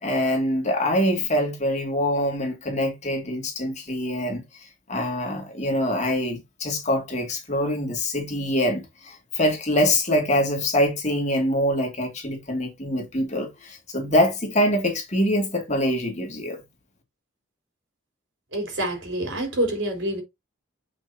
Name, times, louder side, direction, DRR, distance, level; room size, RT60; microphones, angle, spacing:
voice 1, 0.0-16.6, left 1 dB, 35° left, 2.6 m, -24 dB
voice 2, 18.5-20.2, right 1 dB, 65° right, 4.1 m, -27 dB
7.7 x 5.7 x 2.9 m
head